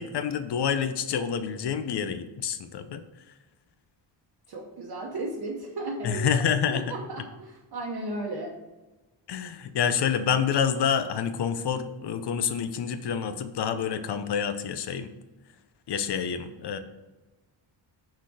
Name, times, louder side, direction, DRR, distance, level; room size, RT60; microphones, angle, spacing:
voice 1, 0.0-3.0 6.0-6.9 9.3-15.1 15.9-16.8, left 7 dB, 60° left, 9 dB, 0.7 m, -28 dB
voice 2, 4.5-8.6, right 2 dB, 55° right, -2 dB, 1.0 m, -35 dB
6.3 x 4.2 x 4.8 m, 1.1 s
wide cardioid pair, 155°, 45 cm